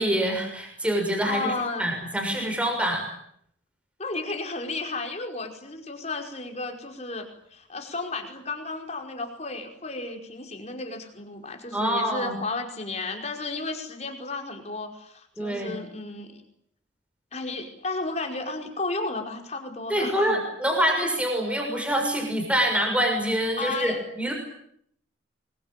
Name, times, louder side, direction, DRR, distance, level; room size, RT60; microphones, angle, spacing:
voice 1, 0.0-1.5 1.8-3.1 11.7-12.4 15.4-15.7 19.9-24.3, equal, 5° right, 2 dB, 6.4 m, -25 dB
voice 2, 1.2-1.9 4.0-16.4 17.3-20.4 23.6-24.0, left 3 dB, 35° left, 4 dB, 5.2 m, -33 dB
26.0 x 22.5 x 9.1 m, 0.70 s
head